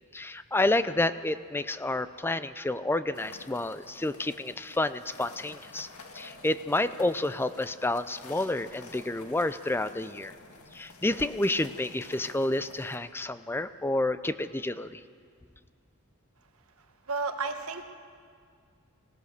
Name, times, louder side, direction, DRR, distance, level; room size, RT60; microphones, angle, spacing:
voice 1, 0.1-5.9 6.1-10.3 10.7-15.0, left 2 dB, 10° left, 13 dB, 0.4 m, -29 dB
sound 1, 3.1-13.0, left 3 dB, 90° left, 1.9 m, -50 dB
voice 2, 17.1-17.9, right 4 dB, 70° right, 6 dB, 1.4 m, -32 dB
25.0 x 16.0 x 6.7 m, 2.2 s
head